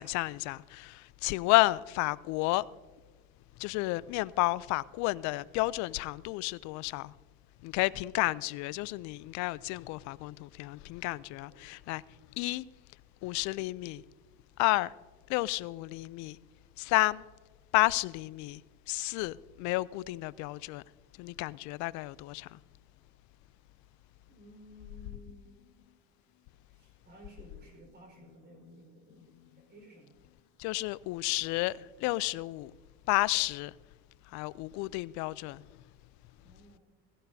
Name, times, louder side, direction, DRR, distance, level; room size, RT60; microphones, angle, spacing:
voice 1, 0.0-2.7 3.6-7.1 7.6-12.0 12.4-12.6 13.2-14.0 14.6-14.9 15.3-16.4 16.8-17.2 17.7-18.6 18.9-20.8 21.2-22.6 30.6-32.7 33.1-33.7 34.3-35.6, left 21 dB, 60° left, 0.5 m, -31 dB
voice 2, 7.8-8.1 11.5-11.7 24.3-25.6 26.7-30.2 36.4-36.8, right 1 dB, 30° right, 4.7 m, -55 dB
16.5 x 16.0 x 2.7 m
supercardioid pair, 105°, 32 cm